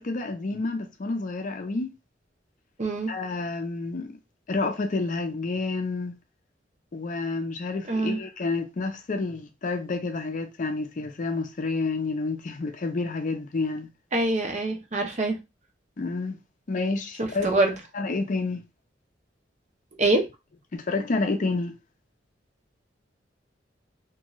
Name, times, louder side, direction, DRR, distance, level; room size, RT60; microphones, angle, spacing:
voice 1, 0.0-1.9 3.1-4.2 4.5-6.1 6.9-13.9 16.0-16.4 16.7-17.5 17.9-18.6 20.7-21.7, left 3 dB, 45° left, 0.5 m, -29 dB
voice 2, 2.8-3.1 7.9-8.2 14.1-15.4 17.2-17.7 20.0-20.3, right 2 dB, 40° right, 0.6 m, -24 dB
2.6 x 2.3 x 3.0 m
head